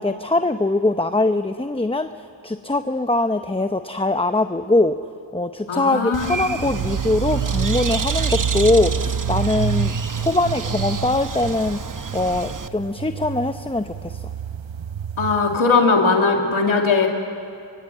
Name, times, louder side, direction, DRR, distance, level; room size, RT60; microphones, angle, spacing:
voice 1, 0.0-2.1 2.4-5.0 5.3-9.9 10.2-11.8 12.1-14.2, left 2 dB, 10° left, 9 dB, 0.7 m, -22 dB
voice 2, 5.7-6.4 15.2-17.1, left 4 dB, 85° left, 1 dB, 2.3 m, -19 dB
Bird, 6.1-12.7, right 5 dB, 40° right, 1.0 m, -29 dB
sound 1, 6.7-15.6, right 8 dB, 70° right, 0.7 m, -28 dB
24.5 x 22.5 x 7.9 m, 2.5 s
cardioid pair, 45°, 47 cm